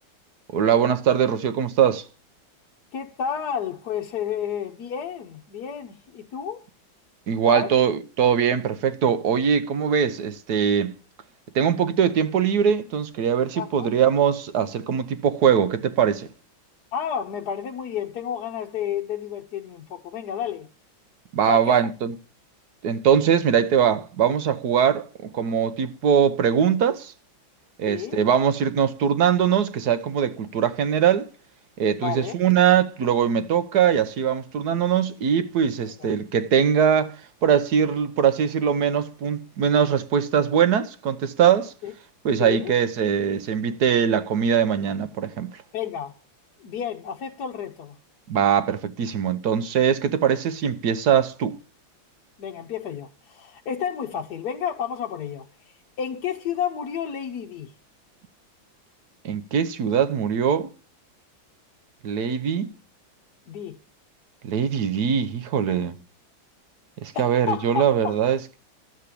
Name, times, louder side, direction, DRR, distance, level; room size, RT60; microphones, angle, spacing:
voice 1, 0.5-2.0 7.3-11.0 11.5-16.3 21.3-22.1 22.8-27.1 27.8-31.3 31.8-37.2 37.4-41.7 42.2-45.5 48.3-51.6 59.2-60.7 62.0-62.7 64.4-66.0 67.0-68.6, right 8 dB, 60° right, 1.3 m, -21 dB
voice 2, 2.9-6.6 7.4-7.7 13.5-13.9 16.9-20.7 21.5-21.8 27.8-28.2 32.0-32.3 36.0-36.1 41.8-41.9 42.4-42.7 45.7-46.1 46.6-48.0 52.4-57.7 63.5-63.8 67.1-68.1, left 8 dB, 60° left, 1.3 m, -31 dB
12.5 x 7.4 x 8.4 m
omnidirectional pair, 2.2 m